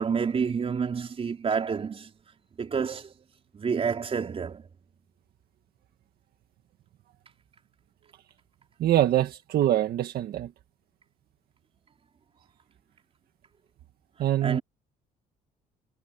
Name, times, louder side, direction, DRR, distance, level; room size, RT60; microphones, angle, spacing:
voice 1, 0.0-2.1 2.6-3.1 3.5-4.7 14.4-14.6, right 6 dB, 35° right, 4.3 m, -28 dB
voice 2, 8.8-10.5 14.2-14.6, right 13 dB, 65° right, 1.7 m, -24 dB
cardioid pair, 110°, 17 cm